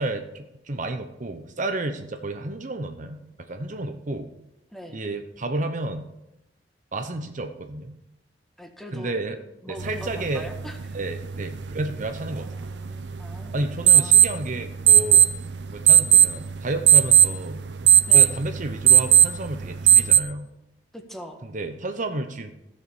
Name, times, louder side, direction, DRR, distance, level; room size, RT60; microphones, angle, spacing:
voice 1, 0.0-4.3 4.9-6.1 6.9-8.0 8.9-9.4 9.7-10.5 10.9-12.5 13.5-15.3 15.7-17.6 18.1-20.5 21.4-22.5, right 2 dB, 45° right, 7 dB, 0.9 m, -31 dB
voice 2, 8.6-9.1 9.6-11.0 12.4-14.2 18.1-18.3 20.9-21.4, equal, ahead, 3 dB, 1.5 m, -41 dB
sound 1, 9.8-20.2, right 10 dB, 80° right, 0.7 m, -19 dB
15.0 x 6.7 x 7.2 m, 0.91 s
head